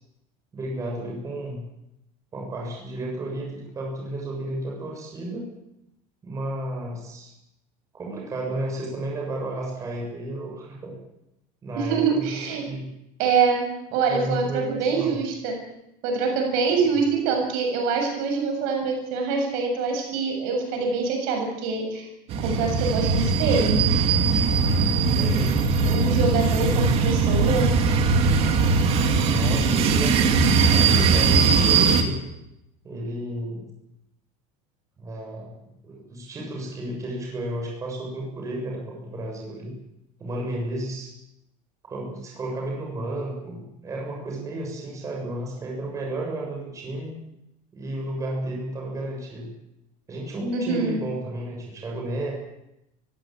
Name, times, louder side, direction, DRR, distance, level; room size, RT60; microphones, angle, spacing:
voice 1, 0.5-1.7 2.3-5.5 6.2-7.3 7.9-11.0 11.6-12.9 14.1-15.2 25.1-25.6 29.2-30.3 30.6-32.2 32.8-33.7 35.0-35.6 35.8-39.7 40.2-41.1 41.8-47.2 47.7-49.5 50.1-52.3, right 1 dB, 15° right, -1 dB, 7.2 m, -32 dB
voice 2, 11.8-12.7 13.2-13.7 13.9-15.6 16.0-22.1 22.4-23.8 25.8-27.7 50.5-50.9, right 5 dB, 55° right, 3 dB, 7.2 m, -25 dB
sound 1, 22.3-32.0, right 4 dB, 35° right, 2.7 m, -20 dB
23.5 x 16.0 x 9.0 m, 0.85 s
cardioid pair, 175°, 18 cm